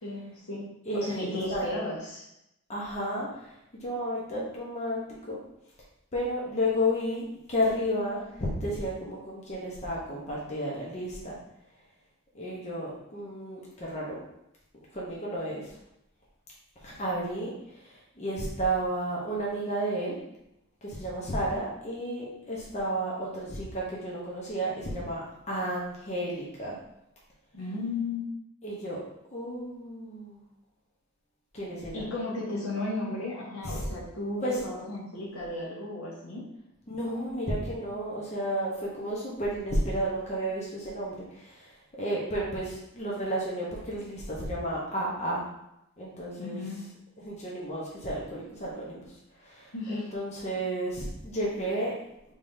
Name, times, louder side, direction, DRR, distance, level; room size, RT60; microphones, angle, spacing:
voice 1, 0.0-2.2 27.5-28.2 31.9-36.4 46.4-46.8 49.7-50.1, left 2 dB, 75° left, -4 dB, 1.1 m, -34 dB
voice 2, 0.9-1.7 2.7-5.4 6.1-11.4 12.3-14.2 14.9-15.7 16.8-20.1 20.8-26.8 28.6-29.0 29.3-30.4 31.5-32.0 33.6-33.8 34.4-34.6 36.9-45.4 46.0-46.6 47.2-49.0 49.4-51.9, equal, 30° left, -5 dB, 0.7 m, -32 dB
3.5 x 3.4 x 2.6 m, 0.83 s
head